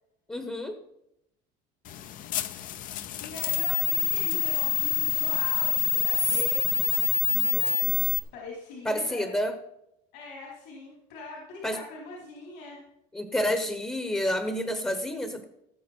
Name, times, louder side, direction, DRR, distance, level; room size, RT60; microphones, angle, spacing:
voice 1, 0.3-0.8 8.8-9.5 11.6-11.8 13.1-15.4, left 1 dB, 10° left, 8 dB, 1.0 m, -29 dB
sound 1, 1.9-8.2, left 8 dB, 45° left, 0.7 m, -26 dB
voice 2, 3.2-8.0 8.3-9.3 10.1-12.8, left 3 dB, 75° left, -4 dB, 4.4 m, -43 dB
18.0 x 7.2 x 4.5 m, 0.84 s
cardioid pair, 135°, 19 cm